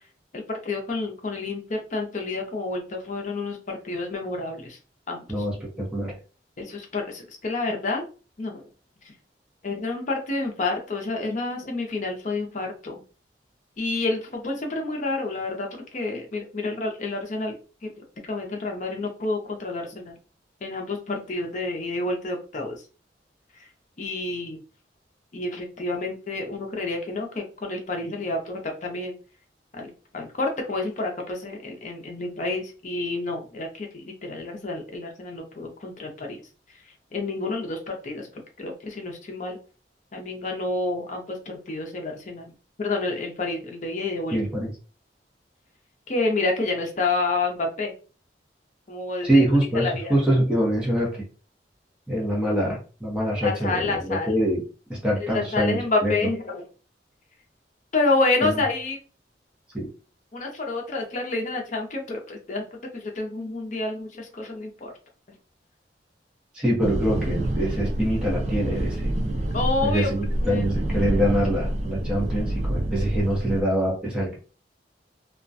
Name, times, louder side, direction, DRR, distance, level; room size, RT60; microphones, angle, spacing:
voice 1, 0.3-4.8 5.1-5.5 6.6-8.0 8.4-8.7 9.6-13.0 13.8-17.5 17.8-17.9 18.2-20.1 20.6-22.8 23.6-23.7 24.0-24.6 25.3-29.1 29.7-36.4 37.1-38.3 38.6-39.6 40.1-42.5 42.8-44.4 46.1-47.9 48.9-49.4 49.7-50.2 53.4-54.4 55.2-56.6 57.9-59.0 60.3-64.9 69.5-70.1 70.4-70.7 70.9-71.1, left 3 dB, 45° left, 2 dB, 0.6 m, -29 dB
voice 2, 5.3-6.1 44.3-44.7 49.2-51.2 52.1-54.6 54.9-56.1 58.4-58.5 59.7-59.9 66.5-69.1 69.8-74.4, equal, 5° right, -4 dB, 0.7 m, -24 dB
sound 1, 66.8-73.6, right 1 dB, 40° right, 0.4 m, -27 dB
2.3 x 2.1 x 2.5 m, 0.36 s
head